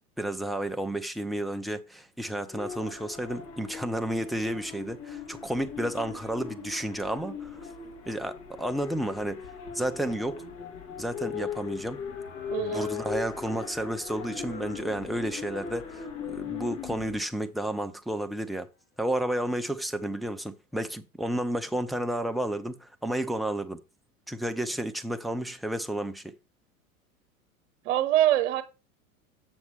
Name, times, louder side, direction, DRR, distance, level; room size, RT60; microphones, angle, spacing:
voice 1, 0.2-7.6 8.1-9.5 9.7-10.4 11.0-12.0 12.6-18.7 19.0-23.8 24.3-26.3, right 1 dB, ahead, 0.5 m, -31 dB
sound 1, 2.5-17.2, left 6 dB, 55° left, 2.8 m, -39 dB
sound 2, 12.0-17.4 17.9-18.0 18.2-18.3 19.1-19.2 19.5-19.9, left 5 dB, 25° left, 1.5 m, -48 dB
voice 2, 12.5-12.9 27.8-28.6, right 13 dB, 55° right, 1.3 m, -24 dB
7.2 x 7.1 x 3.3 m
hypercardioid pair, 90°, 43 cm